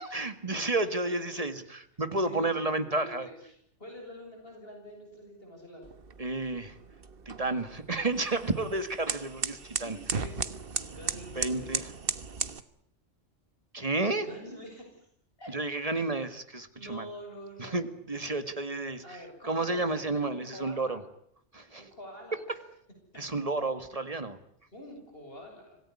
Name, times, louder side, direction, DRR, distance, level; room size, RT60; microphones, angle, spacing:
voice 1, 0.0-3.3 6.2-6.8 7.3-10.0 11.4-11.9 13.7-14.3 15.5-17.1 17.6-21.0 21.5-21.9 23.2-24.4, right 2 dB, 30° right, 10 dB, 2.0 m, -31 dB
voice 2, 2.2-5.8 9.8-10.5 10.8-11.7 14.2-15.1 15.4-15.5 15.9-16.0 16.7-17.8 19.0-21.0 21.8-22.4 24.7-25.8, equal, 55° left, 2 dB, 7.7 m, -46 dB
sound 1, 5.8-12.6, right 5 dB, 55° right, 1.4 m, -36 dB
26.5 x 18.0 x 9.8 m, 0.69 s
omnidirectional pair, 1.2 m